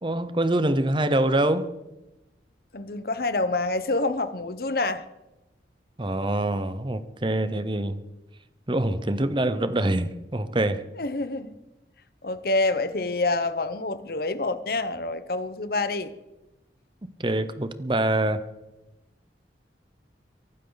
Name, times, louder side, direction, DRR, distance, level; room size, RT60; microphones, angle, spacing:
voice 1, 0.0-1.7 6.0-8.0 8.7-10.9 17.0-18.4, right 1 dB, 25° right, 0.9 m, -25 dB
voice 2, 2.7-5.0 10.9-11.5 12.2-16.1, left 2 dB, 55° left, 1.0 m, -27 dB
23.5 x 12.0 x 4.0 m
head